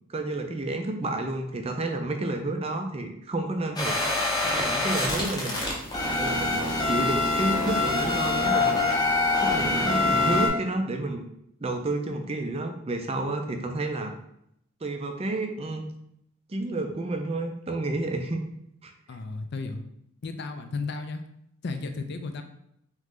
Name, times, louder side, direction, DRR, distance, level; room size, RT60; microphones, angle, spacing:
voice 1, 0.1-4.0 4.4-5.6 6.2-8.9 9.4-11.2 11.6-14.1 14.8-15.9 16.5-18.4 18.8-18.9, right 2 dB, 30° right, 4 dB, 0.4 m, -30 dB
sound 1, 3.8-10.5, left 2 dB, 20° left, 0.7 m, -25 dB
voice 2, 19.1-19.8 20.2-21.2 21.6-22.4, left 3 dB, 50° left, 7 dB, 0.4 m, -33 dB
3.8 x 3.1 x 3.6 m, 0.75 s
head